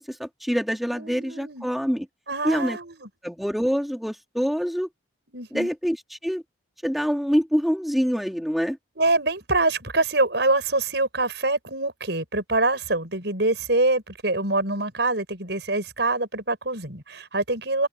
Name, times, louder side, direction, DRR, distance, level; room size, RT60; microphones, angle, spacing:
voice 1, 0.1-2.1 2.4-2.8 3.2-4.9 5.5-6.4 6.8-8.8, equal, ahead, 2.6 m, -25 dB
voice 2, 0.9-1.7 2.3-3.1 5.3-5.7 9.0-17.9, right 2 dB, 60° right, 6.7 m, -25 dB
head